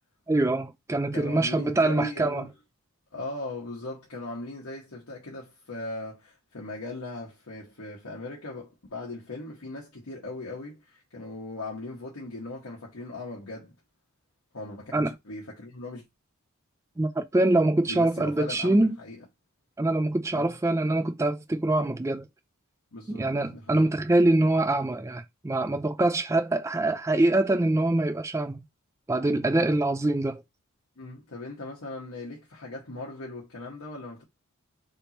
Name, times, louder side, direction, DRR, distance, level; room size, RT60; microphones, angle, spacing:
voice 1, 0.3-2.4 14.9-15.1 17.0-19.0 19.8-22.3 23.1-28.6 29.1-30.4, right 2 dB, 15° right, 0.3 m, -24 dB
voice 2, 1.1-2.5 3.1-13.7 14.5-16.0 17.9-19.2 20.3-20.5 22.9-23.8 29.5-29.8 31.0-34.2, left 2 dB, 70° left, 1.2 m, -39 dB
3.5 x 2.9 x 4.1 m
head